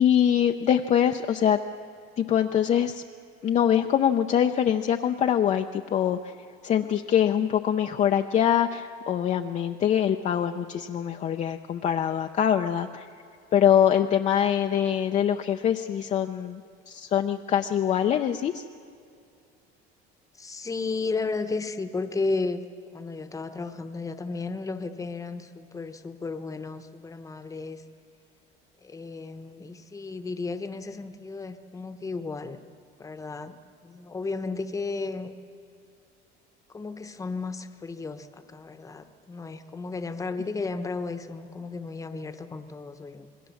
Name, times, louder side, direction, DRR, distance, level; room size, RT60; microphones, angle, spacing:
voice 1, 0.0-1.6 2.2-3.0 3.4-6.3 6.6-13.1 13.5-16.6 16.9-18.6, left 9 dB, 35° left, 5 dB, 0.6 m, -23 dB
voice 2, 20.4-22.6 22.9-27.8 28.8-32.6 33.0-33.5 33.8-35.3 36.7-43.3, left 3 dB, 15° left, 9 dB, 1.0 m, -33 dB
27.5 x 21.0 x 7.1 m, 2.4 s
cardioid pair, 145°, 21 cm